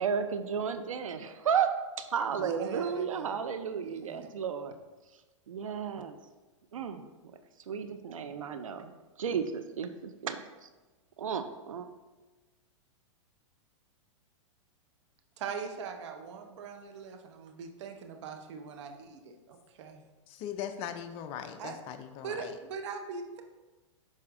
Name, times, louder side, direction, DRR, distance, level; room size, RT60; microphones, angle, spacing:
voice 1, 0.0-4.7 5.5-6.2 6.7-7.0 7.7-8.9 9.2-10.4 11.2-11.9, right 7 dB, 90° right, 9 dB, 0.5 m, -33 dB
voice 2, 2.3-3.3 3.8-4.3 15.4-20.0 21.6-21.7 22.2-23.4, right 5 dB, 65° right, 5 dB, 0.9 m, -41 dB
voice 3, 20.3-22.6, left 9 dB, 35° left, 8 dB, 0.5 m, -40 dB
6.3 x 4.3 x 3.7 m, 1.2 s
hypercardioid pair, 125°, 17 cm